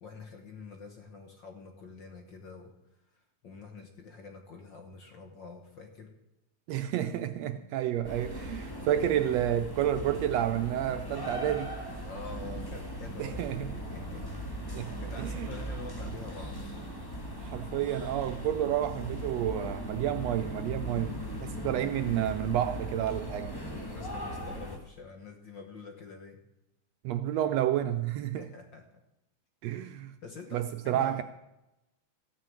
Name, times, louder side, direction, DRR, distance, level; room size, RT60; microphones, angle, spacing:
voice 1, 0.0-2.7 3.1-6.1 8.8-8.9 12.0-14.6 15.0-17.0 21.5-21.8 23.7-26.4 28.4-28.9 30.2-31.2, left 4 dB, 55° left, 1.4 m, -47 dB
voice 2, 6.7-11.7 13.2-13.7 14.7-15.5 17.4-23.6 27.0-28.5 29.6-30.1 30.5-31.2, right 11 dB, 80° right, 1.6 m, -30 dB
sound 1, 8.0-24.8, equal, 15° left, 0.9 m, -39 dB
14.5 x 6.5 x 8.8 m
omnidirectional pair, 3.4 m